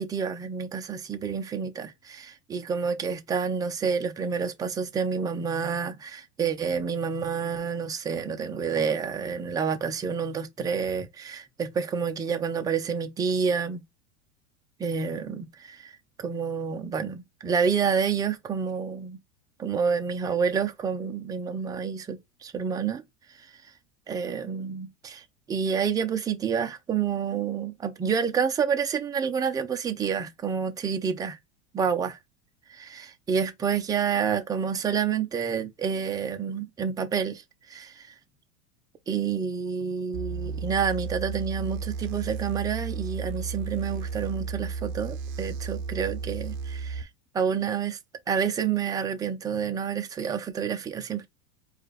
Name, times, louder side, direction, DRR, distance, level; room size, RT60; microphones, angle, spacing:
voice 1, 0.0-13.8 14.8-15.9 16.2-19.2 19.6-23.0 23.4-23.5 24.1-31.4 31.7-32.1 32.8-37.4 37.7-38.1 39.1-47.1 47.3-48.0 48.3-51.3, right 6 dB, 10° right, 0.4 m, -29 dB
sound 1, 40.1-47.0, right 5 dB, 40° right, 0.7 m, -33 dB
4.7 x 2.4 x 3.0 m
supercardioid pair, 130°, 39 cm